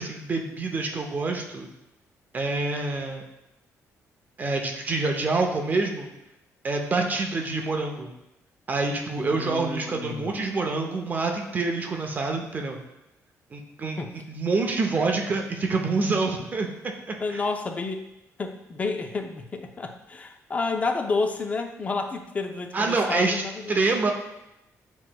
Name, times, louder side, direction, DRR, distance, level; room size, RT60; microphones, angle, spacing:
voice 1, 0.0-1.7 2.3-3.2 4.4-6.1 6.6-8.1 8.7-12.8 13.5-14.0 14.3-16.7 17.1-17.4 22.7-23.4 23.7-24.1, right 3 dB, 30° right, 3 dB, 0.5 m, -26 dB
voice 2, 9.2-10.5 14.0-14.1 17.2-18.1 18.4-23.8, left 3 dB, 25° left, 6 dB, 0.4 m, -30 dB
7.6 x 3.1 x 2.2 m, 0.91 s
cardioid pair, 140°, 6 cm